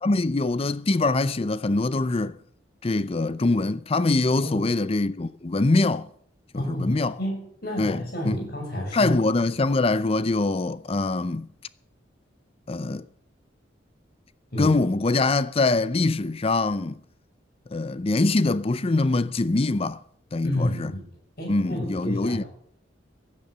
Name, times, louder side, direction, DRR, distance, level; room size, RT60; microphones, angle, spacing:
voice 1, 0.0-2.3 2.8-6.1 6.5-7.2 7.8-8.0 8.2-8.4 8.9-11.5 12.7-13.0 14.6-17.0 17.7-20.0 20.3-20.9 21.5-22.4, left 2 dB, 30° left, 0.5 m, -23 dB
voice 2, 6.5-9.2 14.5-14.8 20.4-21.1 21.4-22.5, left 1 dB, 55° left, 7.0 m, -30 dB
16.0 x 11.0 x 6.8 m
head